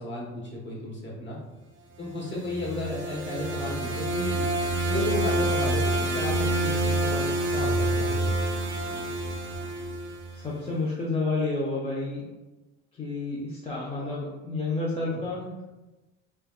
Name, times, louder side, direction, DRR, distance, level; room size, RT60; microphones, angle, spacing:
voice 1, 0.0-1.4 2.0-4.5 4.9-8.3, left 1 dB, 35° left, -4 dB, 1.2 m, -34 dB
sound 1, 2.2-10.4, right 1 dB, 35° right, 0.5 m, -27 dB
voice 2, 10.3-12.3 13.0-15.7, left 3 dB, 20° left, -6 dB, 0.6 m, -30 dB
3.3 x 2.2 x 2.3 m, 1.1 s
supercardioid pair, 75°, 33 cm